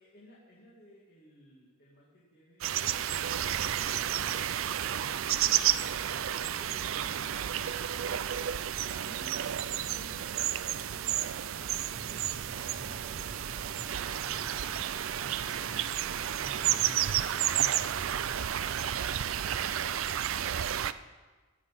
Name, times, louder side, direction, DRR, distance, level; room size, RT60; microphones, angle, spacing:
voice 1, 0.0-4.2 4.8-10.2 10.7-11.9 12.3-13.5 14.0-15.9, equal, 50° left, -6 dB, 2.3 m, -57 dB
sound 1, 2.6-20.9, right 10 dB, 65° right, 0.4 m, -31 dB
sound 2, 11.9-19.3, equal, 5° right, 0.7 m, -49 dB
sound 3, 12.7-18.9, right 5 dB, 50° right, 1.0 m, -56 dB
15.5 x 6.1 x 7.4 m, 1.3 s
head